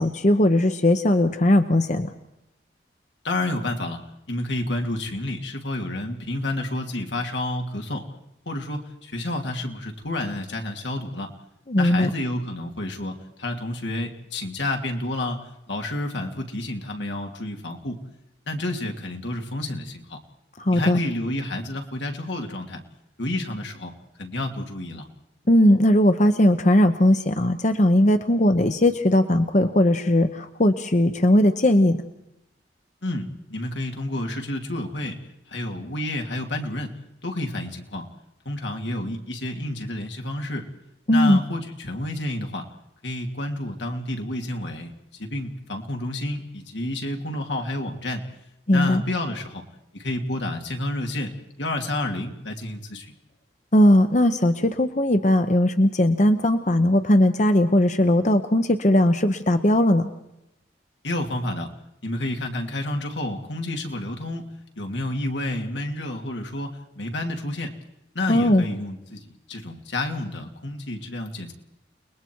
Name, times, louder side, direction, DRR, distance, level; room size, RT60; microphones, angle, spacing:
voice 1, 0.0-2.1 11.7-12.1 20.6-21.0 25.5-32.0 41.1-41.4 48.7-49.0 53.7-60.1 68.3-68.6, left 1 dB, 40° left, 8 dB, 0.9 m, -19 dB
voice 2, 3.2-4.0 4.3-8.0 8.5-11.3 11.8-18.0 18.5-20.2 20.7-22.8 23.2-23.9 24.2-25.1 33.0-35.2 35.5-36.9 37.2-38.0 38.4-40.6 41.1-42.7 43.0-48.2 48.7-49.6 49.9-53.1 61.0-61.7 62.0-64.4 64.8-67.7 68.1-71.5, left 1 dB, 85° left, 3 dB, 2.7 m, -30 dB
30.0 x 20.5 x 4.6 m, 0.86 s
head